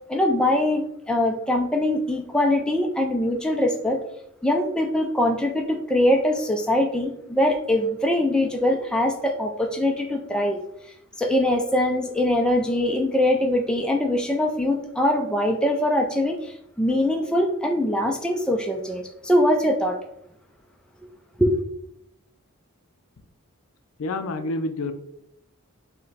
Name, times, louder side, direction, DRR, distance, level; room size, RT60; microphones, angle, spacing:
voice 1, 0.1-4.0 4.4-10.6 11.2-20.0 21.4-21.6, left 1 dB, 5° left, 2 dB, 0.4 m, -22 dB
voice 2, 24.0-24.9, left 2 dB, 70° left, 9 dB, 0.4 m, -28 dB
5.4 x 2.2 x 3.9 m, 0.77 s
head